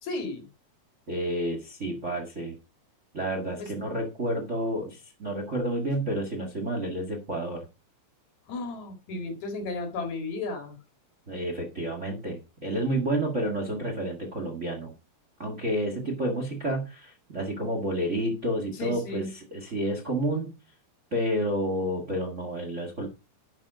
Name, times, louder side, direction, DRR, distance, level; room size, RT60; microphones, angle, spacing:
voice 1, 0.0-0.5 3.6-3.7 8.5-10.8 18.7-19.3, left 3 dB, 65° left, 4 dB, 3.3 m, -34 dB
voice 2, 1.1-2.6 3.1-7.6 11.3-14.9 15.4-20.5 21.1-23.1, right 1 dB, 30° right, 3 dB, 1.4 m, -30 dB
11.0 x 5.2 x 4.9 m, 0.30 s
omnidirectional pair, 3.6 m